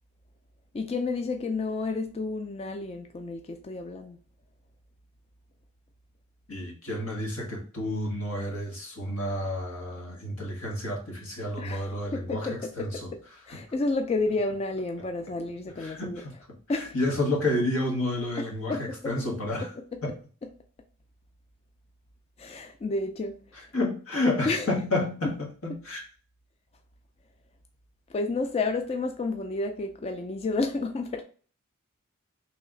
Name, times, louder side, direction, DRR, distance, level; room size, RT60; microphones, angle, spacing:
voice 1, 0.7-4.2 11.6-16.2 16.7-16.9 18.4-19.2 19.8-20.2 20.4-20.5 22.4-23.7 24.5-24.7 25.2-25.3 25.7-25.8 28.1-31.2, left 3 dB, 30° left, 0.3 m, -31 dB
voice 2, 6.5-12.5 12.8-13.1 15.8-16.3 16.9-19.7 20.0-20.1 23.7-26.0, left 1 dB, 90° left, 1.4 m, -30 dB
3.2 x 2.9 x 3.6 m
head